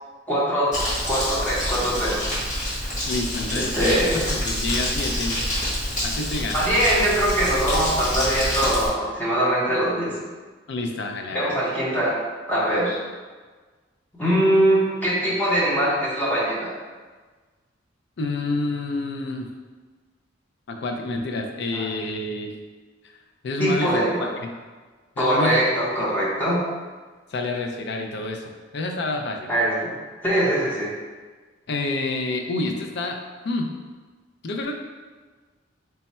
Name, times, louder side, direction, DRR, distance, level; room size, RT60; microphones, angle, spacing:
voice 1, 0.3-0.8 1.1-2.3 3.5-4.3 6.5-10.1 11.3-12.2 12.5-13.0 14.2-16.7 21.7-21.8 23.6-24.3 25.2-26.6 29.5-29.9 30.2-30.9, right 1 dB, 10° left, -8 dB, 0.8 m, -22 dB
Crumpling crinkling, 0.7-8.9, equal, 40° left, 1.2 m, -27 dB
voice 2, 3.0-5.4 6.0-6.6 10.7-11.6 18.2-19.5 20.7-22.5 23.4-24.0 24.4-24.6 25.2-25.6 26.0-26.1 27.3-28.4 28.7-29.5 31.7-33.2 33.4-33.7 34.4-34.7, left 2 dB, 65° left, 3 dB, 0.4 m, -28 dB
3.3 x 2.2 x 4.1 m, 1.4 s
head